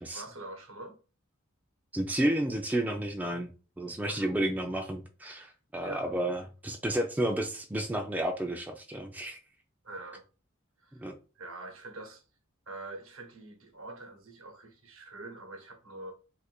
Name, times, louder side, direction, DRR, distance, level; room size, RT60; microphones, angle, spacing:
voice 1, 0.1-1.0 4.1-4.3 5.8-6.1 9.8-10.2 10.8-11.1 11.4-12.2 12.7-16.1, right 2 dB, 75° right, 0.9 m, -45 dB
voice 2, 1.9-3.5 3.8-9.4 11.0-11.1, right 1 dB, 10° right, 0.3 m, -31 dB
2.6 x 2.5 x 4.2 m
head